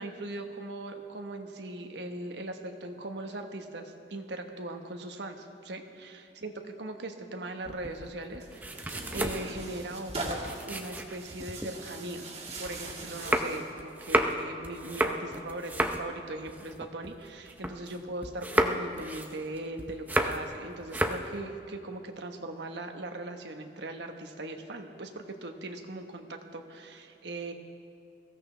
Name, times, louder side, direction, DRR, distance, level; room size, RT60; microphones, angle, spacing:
voice 1, 0.0-6.5 6.8-8.7 9.1-12.3 12.6-15.7 16.0-27.5, right 2 dB, 85° right, 4 dB, 1.3 m, -39 dB
sound 1, 7.6-11.7 12.1-18.0 18.2-20.6 20.8-21.3, right 1 dB, 10° right, 0.6 m, -32 dB
Tearing, 8.4-13.7, right 2 dB, 35° right, 2.1 m, -41 dB
22.0 x 16.0 x 3.4 m, 2.7 s
head